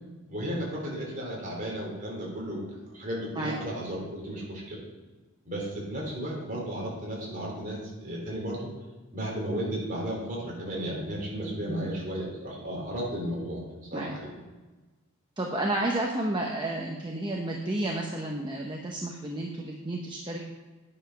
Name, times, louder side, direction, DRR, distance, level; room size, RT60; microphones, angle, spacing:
voice 1, 0.3-2.6 2.9-4.8 5.5-8.7 9.1-13.6 13.9-14.3, right 1 dB, 40° right, -3 dB, 3.6 m, -34 dB
voice 2, 15.4-20.5, right 1 dB, 20° right, 0 dB, 0.9 m, -31 dB
9.8 x 7.3 x 5.8 m, 1.2 s
head